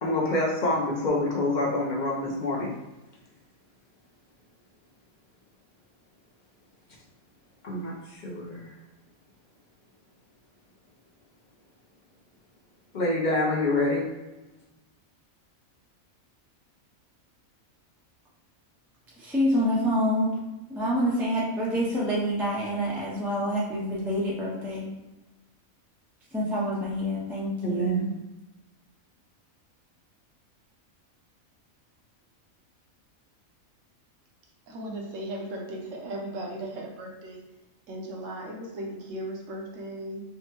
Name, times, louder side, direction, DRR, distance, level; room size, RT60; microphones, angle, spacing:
voice 1, 0.0-2.7 7.6-8.7 12.9-14.1 27.6-28.1, left 1 dB, 50° left, -3 dB, 0.5 m, -26 dB
voice 2, 19.2-20.3 20.7-24.9 26.3-28.1, equal, 5° right, -6 dB, 0.3 m, -27 dB
voice 3, 34.7-37.4 37.9-40.2, right 1 dB, 70° right, 0 dB, 1.0 m, -36 dB
3.5 x 2.1 x 2.9 m, 1.1 s
omnidirectional pair, 1.4 m